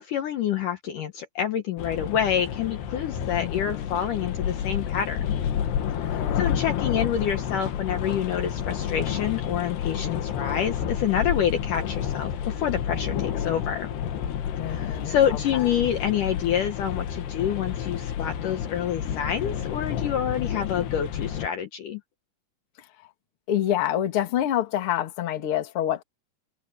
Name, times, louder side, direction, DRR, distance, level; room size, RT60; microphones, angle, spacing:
voice 1, 0.0-5.3 6.0-13.9 14.7-22.0, left 9 dB, 65° left, 2.4 m, -27 dB
sound 1, 1.8-21.5, left 9 dB, 80° left, 3.8 m, -30 dB
voice 2, 3.4-3.9 6.0-7.1 14.6-15.7 22.8-23.1 23.5-26.0, left 11 dB, 45° left, 2.1 m, -28 dB
omnidirectional pair, 4.6 m